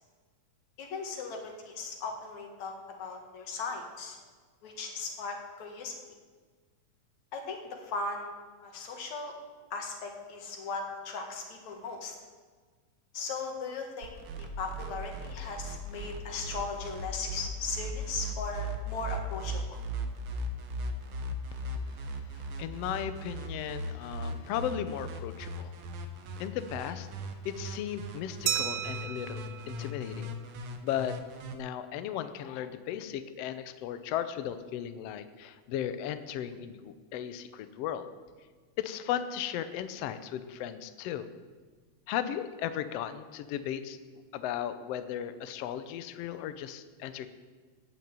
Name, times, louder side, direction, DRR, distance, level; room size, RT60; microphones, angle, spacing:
voice 1, 0.8-2.7 3.0-4.2 4.6-6.0 7.3-8.3 8.6-9.3 9.7-12.2 13.1-19.8, left 4 dB, 60° left, 3 dB, 3.1 m, -38 dB
sound 1, 14.0-31.5, right 2 dB, 60° right, 1.5 m, -38 dB
voice 2, 22.6-25.7 26.4-27.1 27.4-29.4 29.7-30.3 30.8-31.2 31.5-38.1 38.8-41.3 42.1-44.0 44.3-47.3, left 10 dB, 85° left, 11 dB, 1.3 m, -36 dB
Glass, 28.5-30.9, right 10 dB, 80° right, 2.4 m, -35 dB
15.5 x 6.2 x 8.8 m, 1.5 s
omnidirectional pair, 3.7 m